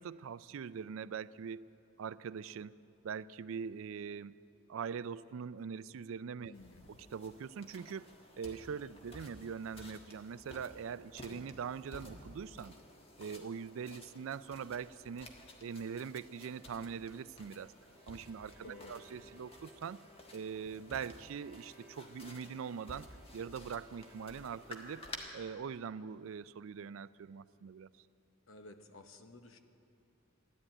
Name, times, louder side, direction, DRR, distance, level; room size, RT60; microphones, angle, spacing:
voice 1, 0.0-1.7 2.0-2.7 3.0-4.4 4.7-6.5 6.9-8.1 8.4-12.8 13.2-15.3 15.6-17.7 18.1-20.0 20.3-25.1 25.3-27.9, right 6 dB, 65° right, 17 dB, 0.4 m, -42 dB
voice 2, 6.4-6.9 18.6-18.9 28.5-29.6, left 2 dB, 70° left, 7 dB, 1.0 m, -53 dB
sound 1, 6.5-25.2, left 1 dB, 25° left, 1.5 m, -54 dB
Bowed string instrument, 17.8-25.6, right 1 dB, 5° right, 3.4 m, -63 dB
14.0 x 11.0 x 8.9 m, 2.8 s
head